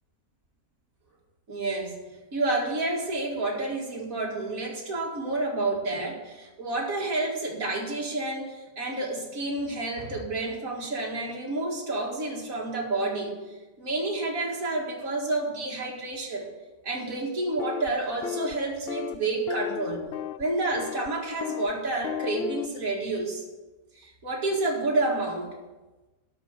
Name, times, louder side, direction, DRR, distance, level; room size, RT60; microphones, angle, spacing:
voice 1, 1.5-2.0 2.3-16.5 16.8-20.0 20.4-23.4 24.0-25.5, right 2 dB, 65° right, -1 dB, 2.5 m, -29 dB
sound 1, 17.6-17.9 18.2-18.6 18.9-19.2 19.5-20.4 20.8-21.1 21.4-21.7 22.0-22.7, left 10 dB, 80° left, 0.5 m, -34 dB
12.0 x 5.0 x 7.8 m, 1.1 s
omnidirectional pair, 1.6 m